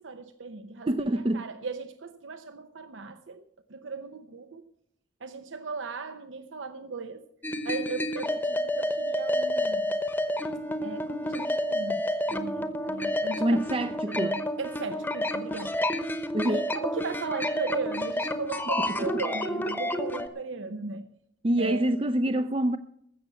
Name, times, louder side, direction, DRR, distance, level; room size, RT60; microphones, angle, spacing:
voice 1, 0.0-3.4 3.7-4.6 5.2-7.2 7.6-9.9 10.8-13.6 14.1-15.8 16.4-21.0 21.6-21.9, right 4 dB, 85° right, 0.8 m, -37 dB
voice 2, 0.9-1.5 13.4-14.4 16.3-16.7 21.4-22.8, right 1 dB, 30° right, 0.5 m, -26 dB
sound 1, 7.4-20.3, left 1 dB, 10° left, 0.9 m, -30 dB
15.0 x 6.9 x 8.3 m
head